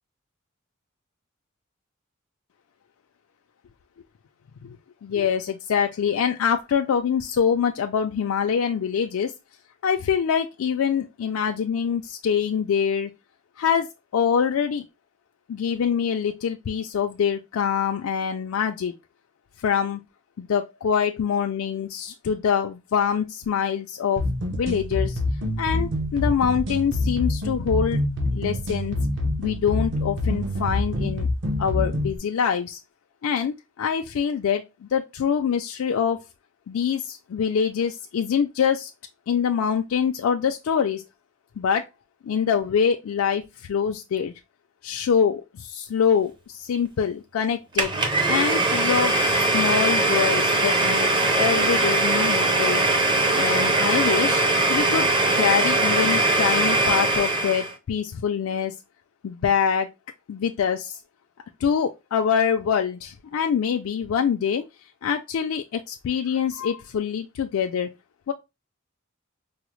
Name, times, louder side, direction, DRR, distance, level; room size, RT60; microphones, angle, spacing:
voice 1, 5.0-9.3 9.8-13.1 13.6-14.9 15.5-18.9 19.6-20.0 20.4-24.2 24.5-25.2 25.6-28.0 28.3-29.0 29.4-31.3 31.6-32.8 33.2-36.2 36.7-38.9 39.3-41.0 41.6-41.9 42.2-44.3 44.8-47.9 48.3-51.1 51.4-52.8 53.3-54.4 54.7-58.7 59.2-59.9 60.3-61.0 61.6-64.7 65.0-67.9 68.3-68.4, left 7 dB, 80° left, 0.4 m, -25 dB
sound 1, 24.2-32.2, left 1 dB, 60° right, 0.7 m, -26 dB
Domestic sounds home sounds, 47.8-57.7, right 2 dB, 20° right, 0.5 m, -21 dB
4.7 x 2.0 x 3.0 m
head